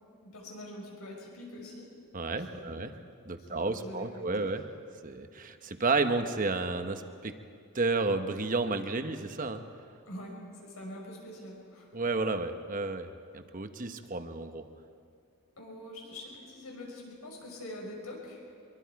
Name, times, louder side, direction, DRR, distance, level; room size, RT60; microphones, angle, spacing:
voice 1, 0.2-1.9 2.5-2.8 3.4-4.5 10.1-10.4 10.6-11.9 15.6-18.4, left 1 dB, 85° left, -2 dB, 5.7 m, -44 dB
voice 2, 2.1-3.0 3.2-4.6 5.0-7.4 7.7-9.6 11.9-13.1 13.3-14.7, right 3 dB, 40° right, 7 dB, 1.0 m, -31 dB
25.5 x 23.0 x 4.7 m, 2.3 s
head